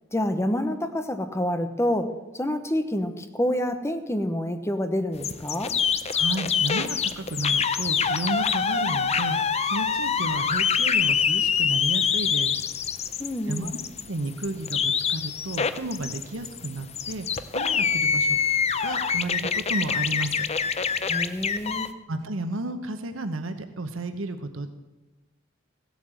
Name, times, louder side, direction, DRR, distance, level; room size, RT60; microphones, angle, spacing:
voice 1, 0.1-5.7 13.2-13.7 21.1-21.9, left 1 dB, 15° left, 8 dB, 0.9 m, -27 dB
sound 1, 5.2-21.9, left 6 dB, 35° left, 0.6 m, -25 dB
voice 2, 6.1-12.7 13.5-13.7 14.1-18.4 18.8-20.5 22.1-24.7, right 2 dB, 85° right, 8 dB, 1.0 m, -32 dB
15.5 x 8.5 x 7.6 m, 1.1 s
head